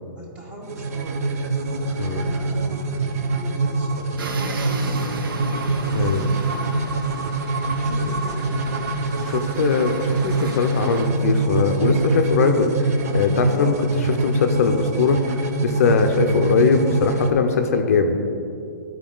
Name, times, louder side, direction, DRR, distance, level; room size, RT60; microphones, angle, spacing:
voice 1, 0.1-5.5 6.0-6.3 7.8-8.7, right 1 dB, 15° right, -1 dB, 0.9 m, -40 dB
sound 1, 0.6-17.3, right 3 dB, 45° right, 0.6 m, -24 dB
sound 2, 4.2-11.1, right 3 dB, 80° right, 0.9 m, -34 dB
voice 2, 5.9-6.3 9.2-18.2, left 5 dB, 45° left, 5 dB, 0.5 m, -21 dB
12.5 x 4.6 x 3.8 m, 2.7 s
hypercardioid pair, 170°, 11 cm